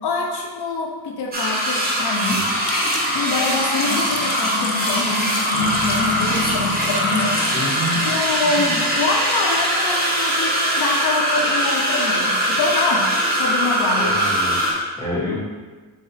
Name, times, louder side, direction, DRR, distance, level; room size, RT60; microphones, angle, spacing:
voice 1, 0.0-2.4 3.1-7.4 8.0-13.1 13.4-14.2, left 3 dB, 75° left, 1 dB, 0.8 m, -25 dB
sound 1, 1.3-14.7, right 1 dB, 25° right, 0.8 m, -21 dB
Water tap faucet / Sink (filling or washing), 2.5-9.4, left 5 dB, 50° left, 0.5 m, -31 dB
sound 2, 5.5-10.0, left 4 dB, 70° right, 1.3 m, -36 dB
voice 2, 7.5-8.1 14.0-15.3, left 1 dB, 10° left, -8 dB, 1.1 m, -28 dB
4.1 x 2.7 x 4.0 m, 1.3 s
cardioid pair, 130°, 40 cm